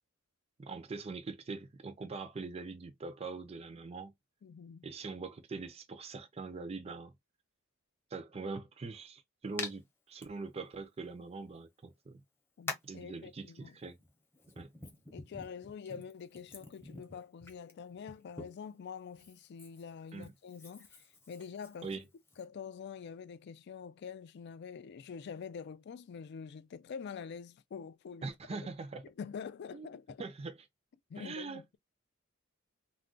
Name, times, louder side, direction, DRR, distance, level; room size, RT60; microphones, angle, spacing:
voice 1, 0.6-4.1 4.8-7.1 8.1-12.2 12.8-14.0 14.6-14.7 15.9-16.0 20.1-20.3 21.8-22.0 28.2-29.0 29.7-29.9 30.2-30.6 31.2-31.8, right 4 dB, 30° right, 0.4 m, -43 dB
voice 2, 4.4-4.9 12.6-13.8 15.1-21.9 22.4-28.7 29.0-30.2 31.1-31.8, left 6 dB, 55° left, 0.3 m, -46 dB
Hands, 9.6-9.7 10.2-10.3 11.5-11.6 12.7-13.0 13.9-18.7 19.1-22.4, left 3 dB, 10° left, 0.7 m, -46 dB
2.3 x 2.1 x 3.7 m
head